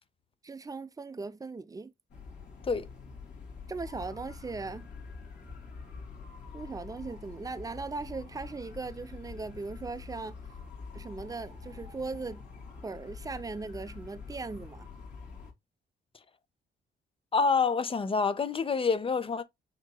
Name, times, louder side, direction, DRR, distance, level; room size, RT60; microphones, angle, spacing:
voice 1, 0.4-1.9 3.7-4.9 6.5-10.4 10.9-12.4 12.8-14.9, right 3 dB, 20° right, 0.5 m, -38 dB
sound 1, 2.1-15.5, left 5 dB, 60° left, 2.3 m, -46 dB
voice 2, 17.3-19.4, left 5 dB, 25° left, 0.5 m, -27 dB
5.7 x 2.9 x 2.2 m
cardioid pair, 90°, 20 cm